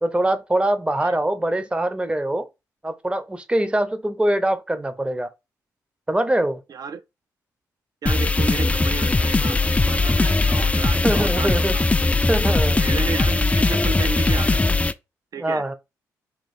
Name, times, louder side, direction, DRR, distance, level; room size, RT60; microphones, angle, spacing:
voice 1, 0.0-2.5 2.8-5.3 6.1-6.6 11.0-11.8 12.3-12.8 15.4-15.7, right 1 dB, 15° right, 0.6 m, -23 dB
voice 2, 6.7-7.0 8.0-11.8 12.5-14.8 15.3-15.6, right 6 dB, 55° right, 0.5 m, -33 dB
sound 1, 8.1-14.9, left 3 dB, 15° left, 0.3 m, -20 dB
3.0 x 2.9 x 4.2 m
supercardioid pair, 50°, 8 cm